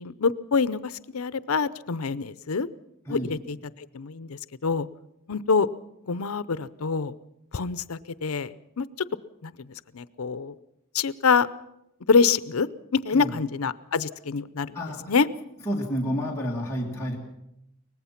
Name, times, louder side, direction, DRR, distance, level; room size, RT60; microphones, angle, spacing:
voice 1, 0.0-2.7 3.1-3.6 3.9-4.9 5.3-5.7 6.1-7.1 7.5-9.1 9.4-9.5 9.9-10.5 10.9-11.5 12.1-14.7 15.1-15.3, left 5 dB, 85° left, 16 dB, 0.7 m, -25 dB
voice 2, 14.7-15.1 15.7-17.2, equal, 15° left, -3 dB, 2.1 m, -30 dB
23.5 x 19.0 x 5.8 m, 0.83 s
head